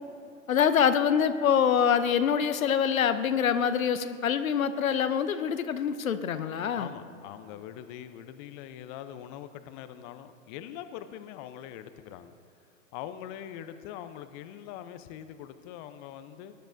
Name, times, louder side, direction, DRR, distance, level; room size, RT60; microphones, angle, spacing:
voice 1, 0.5-6.9, left 8 dB, 85° left, 11 dB, 0.7 m, -25 dB
voice 2, 6.7-12.4 12.9-16.5, left 10 dB, 35° left, 10 dB, 0.6 m, -43 dB
19.5 x 10.0 x 2.6 m, 2.7 s
hypercardioid pair, 105°, 40 cm